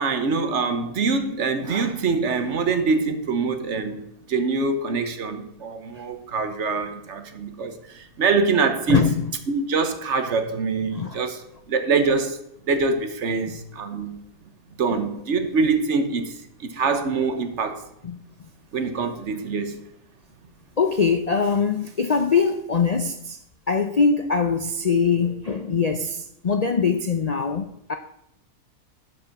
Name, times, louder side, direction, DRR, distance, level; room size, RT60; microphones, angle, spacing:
voice 1, 0.0-9.1 9.5-12.4 12.7-14.2 14.8-17.8 18.7-19.8, right 4 dB, 55° right, 9 dB, 1.2 m, -24 dB
voice 2, 8.9-9.2 10.9-11.2 14.9-15.1 18.0-18.2 20.8-23.4 23.7-27.9, left 5 dB, 60° left, 8 dB, 0.4 m, -22 dB
11.5 x 5.4 x 5.9 m, 0.78 s
omnidirectional pair, 1.6 m